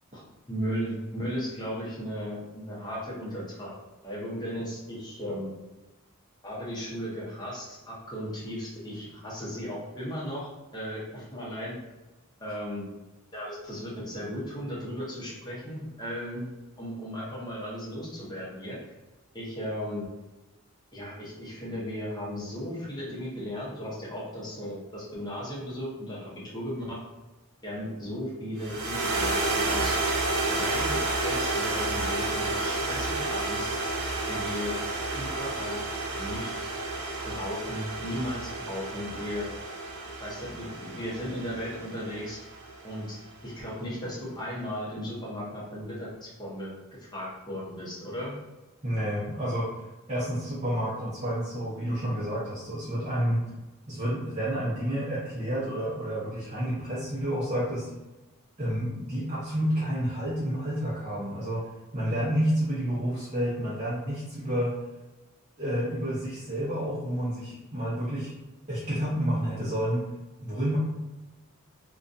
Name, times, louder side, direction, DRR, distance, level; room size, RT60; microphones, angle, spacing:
voice 1, 0.5-3.7 4.0-5.5 6.4-10.5 10.7-11.8 12.4-12.9 13.3-16.5 16.8-18.8 19.3-20.1 20.9-27.0 27.6-30.0 30.5-33.8 34.3-34.8 35.1-35.8 36.1-36.5 37.3-39.5 40.2-42.4 42.8-43.2 43.4-46.7 47.1-48.3, equal, 20° left, -7 dB, 0.7 m, -36 dB
sound 1, 28.6-43.0, right 2 dB, 80° right, 0.7 m, -31 dB
voice 2, 48.8-49.7 50.1-53.4 53.9-57.9 58.6-64.8 65.6-68.3 68.7-70.1 70.4-70.8, equal, 30° right, -10 dB, 0.6 m, -29 dB
2.5 x 2.2 x 2.5 m, 1.1 s
head